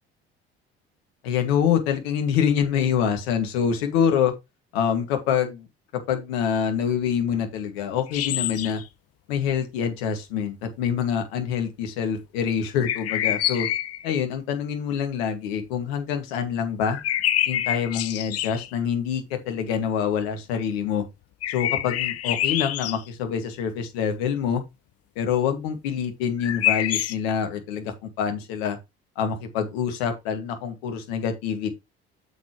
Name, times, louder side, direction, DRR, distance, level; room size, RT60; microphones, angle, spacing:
voice 1, 1.2-4.3 4.7-5.7 6.1-8.8 9.3-13.7 14.0-17.0 17.5-21.0 21.5-24.6 25.2-28.8 29.2-31.7, left 7 dB, 70° left, 2.0 m, -26 dB
sound 1, 8.1-8.8 12.8-14.1 16.8-18.7 21.4-23.0 26.4-27.1, left 12 dB, 50° left, 0.9 m, -26 dB
8.0 x 7.3 x 3.0 m
figure-of-eight pair, 55°, 31 cm